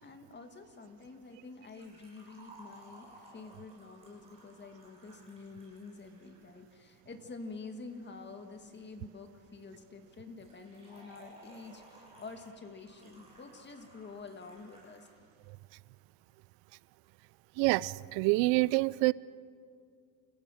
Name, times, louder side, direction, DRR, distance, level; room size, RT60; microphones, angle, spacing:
voice 1, 0.0-15.1, left 4 dB, 25° left, 6 dB, 1.8 m, -48 dB
Liquid, 1.6-6.6 10.4-15.2 15.5-15.6 16.5-16.6, right 1 dB, 15° right, 7.5 m, -57 dB
voice 2, 17.6-19.1, right 22 dB, 75° right, 21 dB, 0.5 m, -27 dB
28.5 x 16.0 x 6.4 m, 2.2 s
cardioid pair, 150°, 45 cm